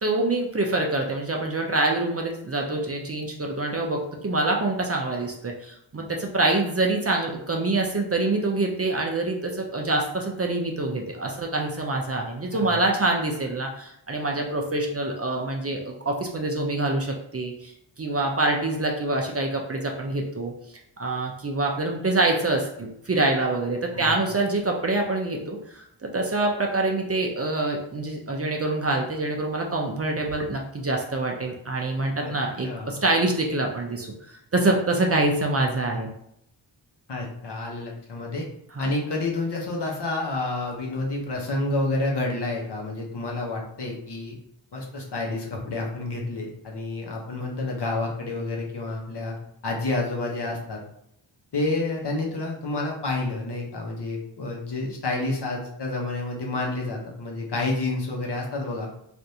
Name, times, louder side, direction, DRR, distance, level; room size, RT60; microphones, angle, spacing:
voice 1, 0.0-17.7 18.0-20.5 21.0-34.1 34.5-36.1 38.8-38.9, right 2 dB, 30° right, 1 dB, 0.5 m, -25 dB
voice 2, 12.5-12.8 23.9-24.2 32.2-32.3 32.6-33.0 37.1-38.4 38.8-44.3 44.7-49.4 49.6-50.8 51.5-58.9, left 2 dB, 60° left, -1 dB, 0.9 m, -29 dB
3.4 x 2.5 x 2.7 m, 0.75 s
wide cardioid pair, 75°, 46 cm